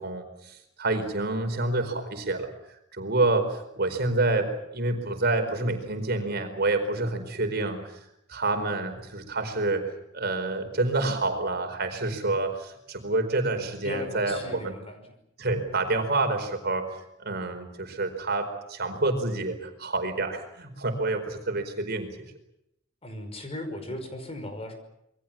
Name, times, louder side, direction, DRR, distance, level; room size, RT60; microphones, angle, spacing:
voice 1, 0.0-2.5 2.9-8.0 8.3-14.7 15.4-22.1, right 2 dB, 55° right, 6 dB, 4.7 m, -28 dB
voice 2, 13.8-15.1 23.0-24.7, left 1 dB, 30° left, 7 dB, 5.6 m, -37 dB
27.5 x 22.5 x 7.4 m, 0.80 s
head